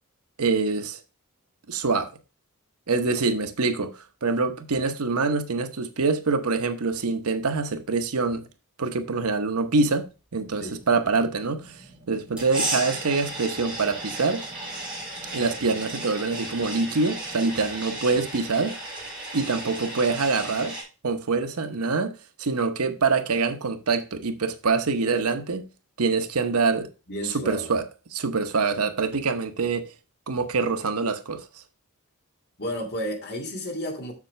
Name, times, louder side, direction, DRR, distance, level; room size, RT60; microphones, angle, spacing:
voice 1, 0.4-1.0 1.7-2.1 2.9-8.5 8.8-14.4 15.3-18.7 19.3-20.8 21.0-22.1 22.4-25.6 26.0-26.9 27.2-27.9 28.1-29.9 30.3-31.5, right 4 dB, 80° right, 0.9 m, -25 dB
sound 1, 10.4-17.4, right 1 dB, 20° right, 3.5 m, -51 dB
sound 2, 12.4-20.8, right 2 dB, 5° right, 3.9 m, -34 dB
voice 2, 27.1-27.7 32.6-34.1, equal, 50° left, 2.2 m, -32 dB
7.2 x 6.5 x 3.2 m
head